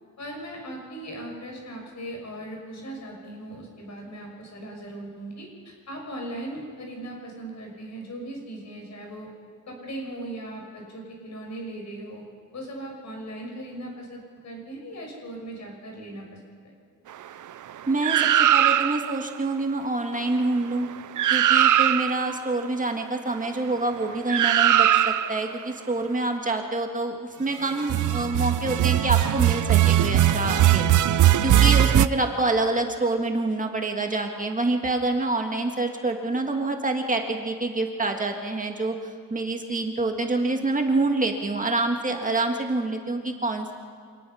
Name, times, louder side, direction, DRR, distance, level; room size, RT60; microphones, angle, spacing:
voice 1, 0.2-9.3 9.7-12.2 12.5-16.4 16.6-16.7, right 1 dB, 55° left, 1 dB, 6.3 m, -38 dB
voice 2, 17.9-20.9 21.3-30.9 31.4-43.7, right 2 dB, 25° right, 3 dB, 1.8 m, -26 dB
sound 1, 18.0-19.2 20.8-20.9 21.2-22.3 24.3-25.5 27.8-32.1, right 11 dB, 65° right, 0.6 m, -20 dB
26.0 x 19.5 x 5.7 m, 2.2 s
wide cardioid pair, 130°, 33 cm